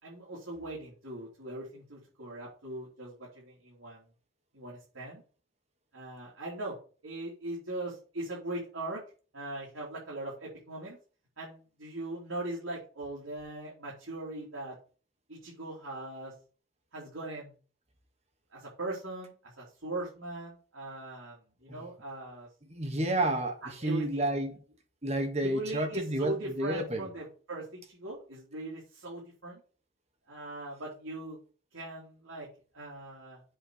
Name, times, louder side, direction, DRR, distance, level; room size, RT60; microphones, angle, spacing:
voice 1, 0.0-4.0 4.5-5.2 5.9-6.8 7.0-9.0 9.3-11.0 11.4-14.7 15.3-16.3 16.9-17.5 18.5-22.5 23.6-24.3 25.4-29.6 30.3-31.4 31.7-32.5 32.7-33.4, right 2 dB, 80° right, 3.3 m, -40 dB
voice 2, 22.7-24.6 25.0-27.1, right 1 dB, 30° right, 1.4 m, -30 dB
7.8 x 4.3 x 6.6 m
head